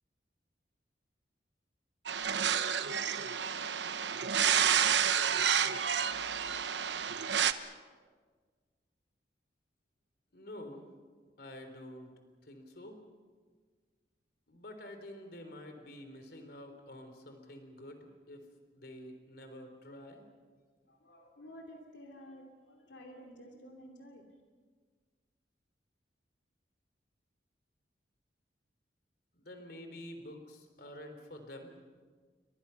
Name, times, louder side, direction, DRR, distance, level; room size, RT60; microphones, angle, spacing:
sound 1, 2.1-7.5, right 8 dB, 75° right, 1.0 m, -30 dB
voice 1, 10.3-10.9 11.4-12.1 12.4-13.0 14.5-18.5 18.7-20.2 29.3-31.7, left 1 dB, 60° left, 6 dB, 3.5 m, -48 dB
voice 2, 20.8-24.2, equal, 80° left, 2 dB, 2.8 m, -52 dB
30.0 x 24.0 x 5.8 m, 1.5 s
head